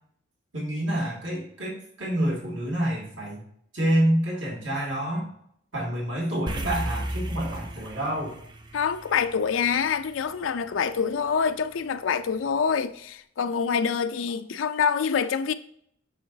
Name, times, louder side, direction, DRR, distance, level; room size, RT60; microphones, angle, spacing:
voice 1, 0.5-3.4 3.7-5.3 5.7-8.3, right 1 dB, 70° right, 2.5 m, -27 dB
sound 1, 6.5-11.0, right 1 dB, 25° right, 0.6 m, -35 dB
voice 2, 8.7-15.5, left 6 dB, 90° left, 0.4 m, -26 dB
7.4 x 6.4 x 2.7 m
head